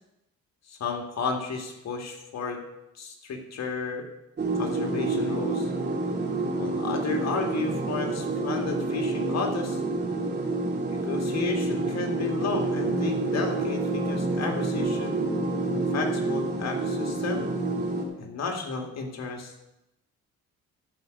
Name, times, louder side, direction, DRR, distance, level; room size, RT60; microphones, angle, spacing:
voice 1, 0.7-2.6 3.0-4.1 4.6-5.7 6.5-9.8 10.9-15.3 15.9-17.5 18.2-19.5, left 4 dB, 60° left, 3 dB, 2.2 m, -32 dB
sound 1, 4.4-18.0, right 2 dB, 35° right, 2.8 m, -28 dB
12.0 x 5.2 x 7.8 m, 0.89 s
cardioid pair, 90°, 30 cm